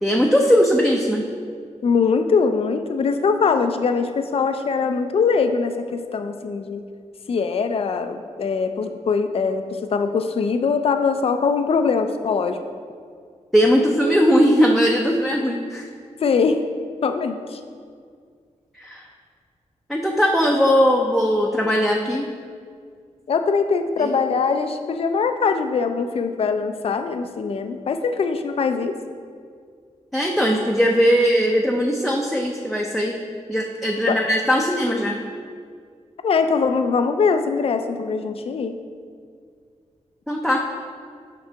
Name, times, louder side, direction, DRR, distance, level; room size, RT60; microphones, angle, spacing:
voice 1, 0.0-1.2 13.5-15.9 18.7-19.0 19.9-22.3 24.0-24.1 30.1-33.2 33.5-35.2 40.3-40.7, equal, ahead, -1 dB, 0.6 m, -19 dB
voice 2, 1.8-6.8 7.3-12.6 16.2-16.6 17.0-17.6 23.3-29.0 34.1-34.2 36.2-38.7, left 5 dB, 50° left, 7 dB, 0.4 m, -22 dB
6.5 x 4.8 x 3.4 m, 2.1 s
cardioid pair, 60°, 13 cm